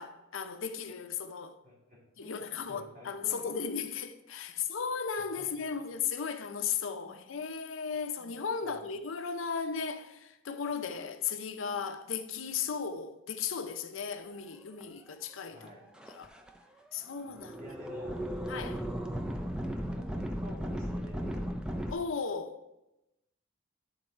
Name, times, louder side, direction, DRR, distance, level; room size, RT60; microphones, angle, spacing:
voice 1, 0.0-1.5 2.2-15.7 16.1-16.3 16.9-17.7 18.5-18.8 21.9-22.6, left 6 dB, 80° left, 0.6 m, -36 dB
voice 2, 1.6-3.5 4.5-4.7 5.4-5.8 7.0-7.1 8.2-8.9 15.5-15.9 17.6-18.3 19.3-19.5 19.9-21.5, left 1 dB, 40° right, 2.8 m, -51 dB
sound 1, 14.8-14.9 15.7-15.8 15.9-16.5 17.1-21.9, equal, 5° right, 0.4 m, -36 dB
10.5 x 3.9 x 4.5 m
head